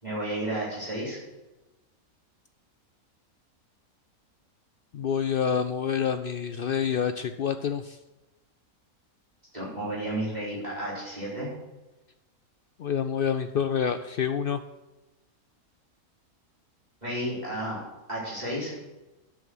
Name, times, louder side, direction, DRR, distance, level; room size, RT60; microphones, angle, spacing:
voice 1, 0.0-1.2 9.5-11.5 17.0-17.8 18.1-18.8, right 1 dB, 30° right, -8 dB, 4.2 m, -32 dB
voice 2, 4.9-8.0 12.8-14.6, left 7 dB, 85° left, 9 dB, 0.5 m, -27 dB
8.4 x 7.2 x 7.7 m, 1.0 s
omnidirectional pair, 1.5 m